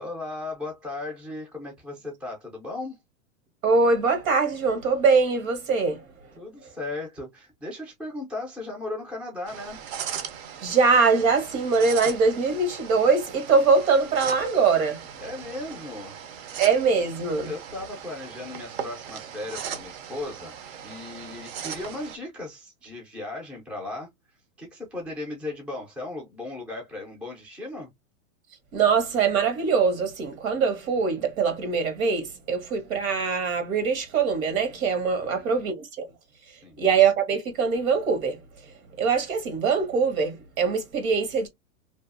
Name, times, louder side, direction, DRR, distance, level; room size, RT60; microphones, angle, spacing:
voice 1, 0.0-3.0 6.4-9.8 15.2-16.5 17.4-20.6 20.8-27.9 35.2-35.7 36.5-36.8, left 2 dB, 5° right, 0.4 m, -37 dB
voice 2, 3.6-6.0 10.6-15.0 16.6-17.5 28.7-36.0 36.8-38.4 39.0-41.5, right 5 dB, 85° right, 1.3 m, -22 dB
sound 1, 9.5-22.2, right 8 dB, 50° right, 0.6 m, -38 dB
2.7 x 2.4 x 2.4 m
supercardioid pair, 155°, 40 cm